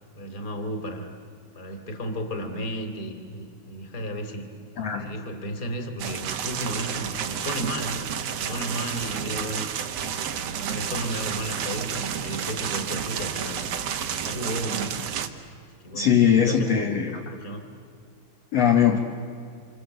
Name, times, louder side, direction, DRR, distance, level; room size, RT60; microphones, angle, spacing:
voice 1, 0.1-1.1 1.5-4.4 5.0-8.1 8.4-9.7 10.3-15.0 15.6-16.9 17.3-17.7, equal, 25° left, 6 dB, 2.4 m, -33 dB
voice 2, 4.8-5.1 15.9-17.3 18.5-19.0, left 8 dB, 55° left, 1 dB, 2.1 m, -21 dB
sound 1, 6.0-15.3, right 8 dB, 65° right, 1.7 m, -31 dB
27.5 x 27.0 x 8.0 m, 2.3 s
omnidirectional pair, 4.5 m